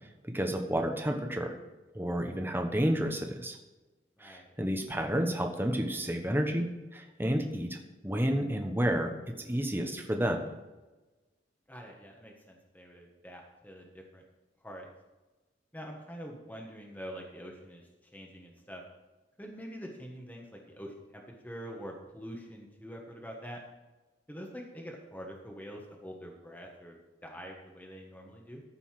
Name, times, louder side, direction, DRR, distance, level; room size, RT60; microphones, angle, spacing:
voice 1, 0.2-1.5 1.9-3.6 4.2-6.7 6.9-7.8 8.0-9.1 9.4-10.4, equal, 10° right, 4 dB, 1.1 m, -30 dB
voice 2, 4.2-4.5 11.7-14.2 14.6-14.9 15.7-17.8 18.1-18.8 19.4-23.6 24.3-27.0 27.2-28.6, equal, 10° left, 0 dB, 1.4 m, -45 dB
14.5 x 5.5 x 5.9 m, 1.1 s
head